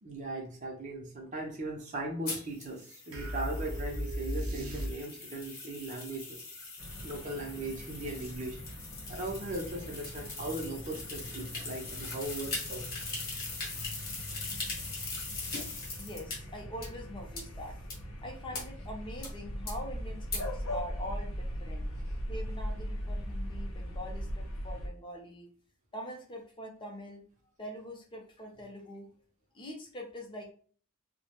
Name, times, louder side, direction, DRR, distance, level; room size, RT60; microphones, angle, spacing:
voice 1, 0.0-6.4 7.0-8.6 9.1-12.9, right 2 dB, 35° right, -1 dB, 0.5 m, -38 dB
sound 1, 2.3-16.4 16.8-16.9 17.4-17.5 17.9-18.0 18.5-18.6 19.2-19.3 19.7-19.8 20.3-20.4, left 3 dB, 45° left, 0.9 m, -41 dB
sound 2, 3.1-5.4, equal, 80° right, 0.6 m, -36 dB
sound 3, 6.8-24.9, equal, 70° left, 0.5 m, -40 dB
voice 2, 16.0-17.8 18.2-21.9 22.3-25.5 25.9-27.2 27.6-29.1 29.5-30.5, equal, 25° left, 1 dB, 0.5 m, -43 dB
2.1 x 2.0 x 2.8 m, 0.44 s
head